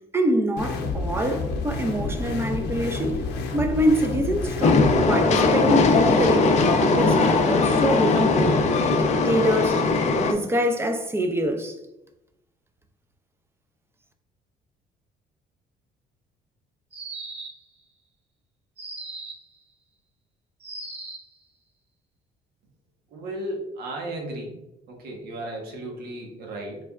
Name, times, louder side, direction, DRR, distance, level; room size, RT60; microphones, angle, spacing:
voice 1, 0.1-3.2 3.5-8.5 8.9-9.8 10.2-11.7, equal, 15° right, 0.5 m, -25 dB
sound 1, 0.6-5.0, left 3 dB, 85° left, 0.7 m, -29 dB
Train, 4.6-10.3, left 3 dB, 40° left, 0.5 m, -20 dB
sound 2, 16.9-17.7 18.8-19.5 20.6-21.3, right 3 dB, 35° right, 0.8 m, -38 dB
voice 2, 23.1-24.5 24.9-26.8, right 1 dB, 65° right, 1.0 m, -34 dB
4.2 x 3.3 x 2.3 m
cardioid pair, 110°, 17 cm